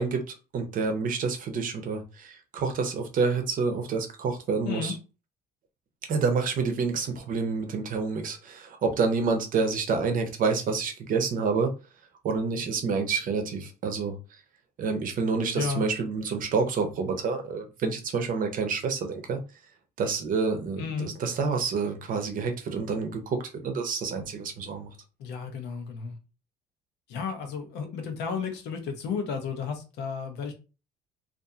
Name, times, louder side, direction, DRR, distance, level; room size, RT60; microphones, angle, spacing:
voice 1, 0.0-4.9 6.1-11.7 12.2-14.2 14.8-19.4 20.0-23.4 23.6-24.9, right 4 dB, 55° right, 6 dB, 0.7 m, -28 dB
voice 2, 15.5-15.9 20.8-21.1 25.2-26.2 27.1-30.5, left 6 dB, 85° left, 4 dB, 0.8 m, -33 dB
2.7 x 2.5 x 2.3 m, 0.31 s
cardioid pair, 110°, 17 cm